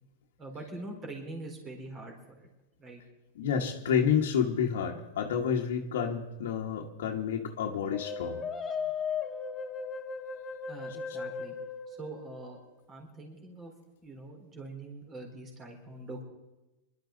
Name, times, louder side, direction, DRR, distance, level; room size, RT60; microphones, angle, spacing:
voice 1, 0.4-2.5 2.8-3.0 10.7-11.6 11.9-12.6 12.9-13.7 14.0-16.2, right 2 dB, 25° right, 1 dB, 4.1 m, -43 dB
voice 2, 3.3-8.4, left 7 dB, 80° left, 0 dB, 1.4 m, -29 dB
sound 1, 7.9-12.7, left 6 dB, 20° left, 1.1 m, -36 dB
21.5 x 12.5 x 4.0 m, 1.0 s
hypercardioid pair, 125°, 0 cm